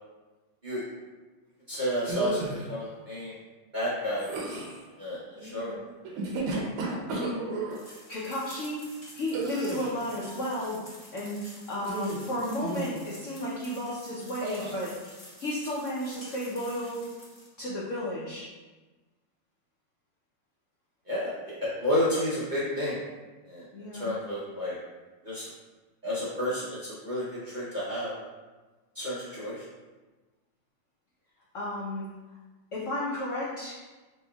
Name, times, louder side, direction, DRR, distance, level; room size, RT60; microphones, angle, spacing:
voice 1, 1.7-3.4 3.7-4.6 5.0-5.8 21.1-21.3 21.6-23.0 23.4-23.7 23.9-24.8 25.2-25.5 26.0-28.1 28.9-29.6, left 1 dB, 70° right, -10 dB, 0.4 m, -31 dB
sound 1, 2.0-2.7 4.2-4.8 6.0-7.8 9.3-10.0 11.8-12.3 12.6-13.0 14.4-14.8, right 3 dB, 90° right, 1.6 m, -33 dB
voice 2, 5.4-5.8 7.1-7.5 8.1-8.8 9.1-10.8 11.1-14.9 15.4-17.1 17.6-18.5 23.7-24.1 31.5-32.1 32.7-33.8, left 1 dB, 80° left, -6 dB, 0.6 m, -33 dB
sound 2, 7.7-17.5, left 1 dB, 10° left, 1.0 m, -50 dB
5.1 x 3.2 x 2.3 m, 1.2 s
omnidirectional pair, 2.2 m